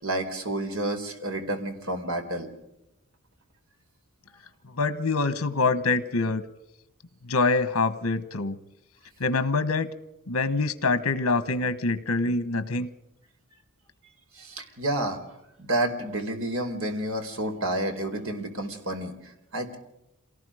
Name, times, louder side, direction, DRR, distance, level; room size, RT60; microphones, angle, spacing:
voice 1, 0.0-2.5 14.4-15.2 15.6-19.8, right 1 dB, 65° right, 6 dB, 4.1 m, -30 dB
voice 2, 4.8-6.4 7.2-8.6 9.2-9.9 10.3-12.9, left 3 dB, 75° left, 12 dB, 1.2 m, -25 dB
27.5 x 19.0 x 5.0 m, 0.88 s
head